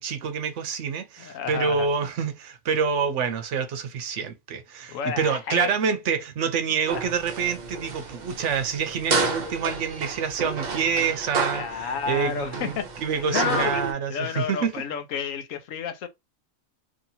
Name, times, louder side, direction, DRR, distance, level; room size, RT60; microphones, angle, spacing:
voice 1, 0.0-14.7, right 6 dB, 65° right, 1.0 m, -27 dB
voice 2, 1.2-1.9 4.9-5.7 6.9-7.1 11.5-13.8 14.1-16.1, left 7 dB, 75° left, 1.1 m, -31 dB
sound 1, 6.9-13.9, right 4 dB, 45° right, 0.6 m, -31 dB
3.0 x 2.8 x 2.7 m
omnidirectional pair, 1.4 m